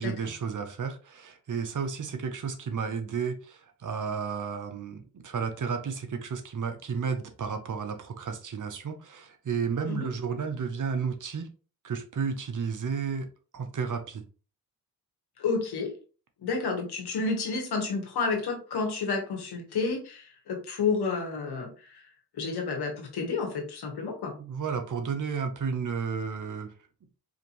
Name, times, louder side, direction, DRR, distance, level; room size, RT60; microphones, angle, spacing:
voice 1, 0.0-11.5 11.8-14.2 24.4-26.7, right 6 dB, 55° right, 0.9 m, -32 dB
voice 2, 15.4-16.0 16.4-22.0 22.3-24.4, left 4 dB, 85° left, 1.4 m, -30 dB
4.9 x 2.7 x 3.0 m
cardioid pair, 75°, 38 cm